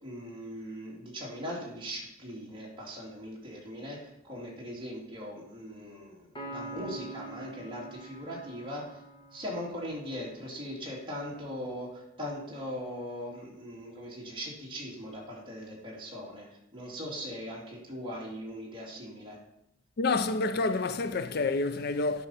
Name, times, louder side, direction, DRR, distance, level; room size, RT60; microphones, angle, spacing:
voice 1, 0.0-4.0 4.2-9.0 9.3-16.5 16.7-19.4, equal, 25° right, 2.6 m, -40 dB
Piano, 6.4-10.0, right 2 dB, 25° left, 1.6 m, -44 dB
voice 2, 20.0-22.3, left 3 dB, 50° left, 0.5 m, -28 dB
9.6 x 5.5 x 5.6 m
head